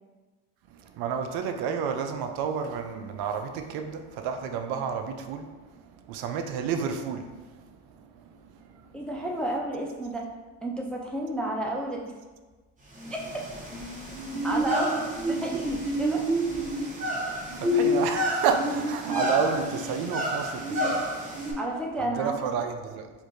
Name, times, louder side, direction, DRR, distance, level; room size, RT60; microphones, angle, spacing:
voice 1, 0.7-9.1 13.1-13.2 14.3-14.4 17.1-21.6 22.0-23.1, right 6 dB, 65° right, 6 dB, 0.5 m, -31 dB
voice 2, 8.9-10.3 10.6-12.2 13.1-13.5 14.4-16.2 21.3-22.4, right 1 dB, 5° left, -1 dB, 0.3 m, -32 dB
sound 1, 13.0-21.5, equal, 20° right, 0.9 m, -29 dB
4.5 x 2.5 x 2.5 m, 1.3 s
supercardioid pair, 95°, 40 cm